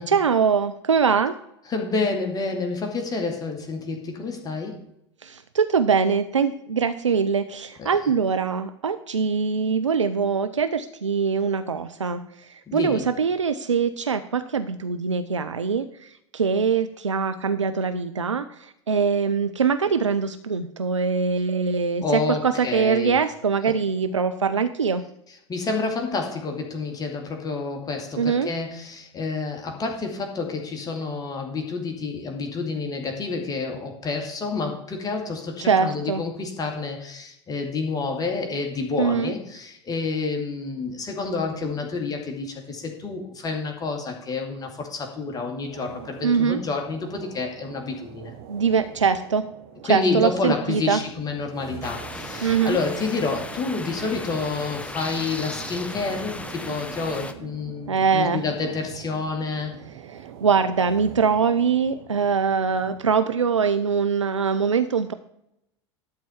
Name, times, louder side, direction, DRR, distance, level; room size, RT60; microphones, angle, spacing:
voice 1, 0.1-1.4 5.2-25.0 28.2-28.5 35.6-36.2 39.0-39.3 46.2-46.6 48.5-49.4 49.9-51.0 52.4-52.8 57.9-58.4 60.1-65.1, right 6 dB, 85° right, 10 dB, 0.6 m, -23 dB
voice 2, 1.7-4.8 7.8-7.9 12.7-13.1 22.0-23.2 25.5-48.3 49.8-59.7, left 4 dB, 25° left, 3 dB, 2.4 m, -29 dB
sound 1, 45.7-63.1, right 9 dB, 60° right, 1.2 m, -44 dB
sound 2, 51.8-57.3, left 2 dB, 10° left, 0.9 m, -36 dB
12.5 x 4.5 x 7.1 m, 0.78 s
figure-of-eight pair, 80°, 15 cm